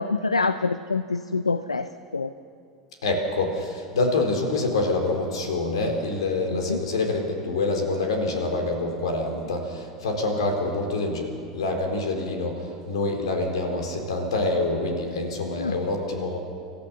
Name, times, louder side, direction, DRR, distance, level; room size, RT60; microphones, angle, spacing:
voice 1, 0.0-2.3 6.5-6.8 15.5-15.8, left 4 dB, 90° left, 13 dB, 0.5 m, -26 dB
voice 2, 3.0-16.4, left 2 dB, 75° left, 4 dB, 3.8 m, -26 dB
26.0 x 14.0 x 7.0 m, 2.4 s
figure-of-eight pair, 80°, 3 cm